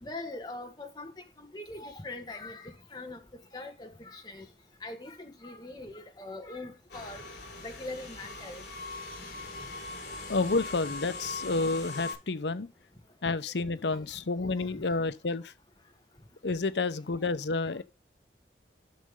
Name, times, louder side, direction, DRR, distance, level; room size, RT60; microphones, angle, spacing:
voice 1, 0.0-1.1 1.4-3.2 3.5-4.5 4.8-7.2 7.6-8.6 14.7-14.9, left 2 dB, 25° left, 1.7 m, -42 dB
sound 1, 6.9-12.1, left 3 dB, 55° left, 5.1 m, -40 dB
voice 2, 10.3-12.7 13.2-15.5 16.4-17.8, left 3 dB, 80° left, 0.7 m, -30 dB
11.5 x 6.6 x 3.7 m
head